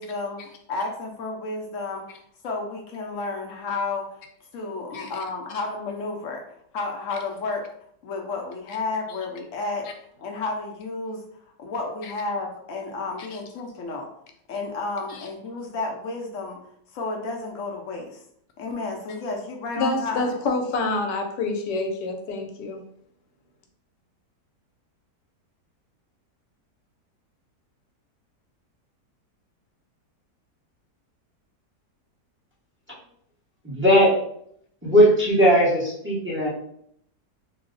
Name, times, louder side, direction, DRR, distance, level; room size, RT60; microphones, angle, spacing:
voice 1, 0.0-4.2 4.5-7.7 8.0-9.9 10.2-14.1 14.5-16.6 16.9-18.2 18.6-20.4, left 3 dB, 70° left, 1 dB, 0.7 m, -32 dB
voice 2, 19.8-22.8, left 3 dB, 90° left, 4 dB, 1.2 m, -27 dB
voice 3, 33.6-34.1 34.8-36.5, equal, 15° right, -7 dB, 0.5 m, -18 dB
2.9 x 2.0 x 3.7 m, 0.69 s
omnidirectional pair, 1.8 m